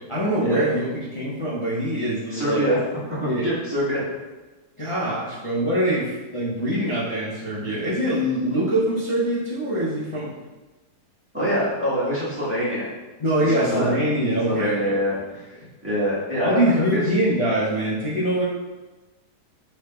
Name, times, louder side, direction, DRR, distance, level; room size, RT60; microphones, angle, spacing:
voice 1, 0.1-2.6 3.2-3.5 4.8-10.3 13.2-14.9 16.4-18.4, right 1 dB, 35° left, -9 dB, 0.5 m, -23 dB
voice 2, 2.3-2.8 3.4-4.0 11.3-12.9 13.4-13.9 14.5-15.4 15.8-17.0, equal, 10° right, -11 dB, 1.3 m, -24 dB
5.8 x 3.3 x 2.3 m, 1.2 s
omnidirectional pair, 1.7 m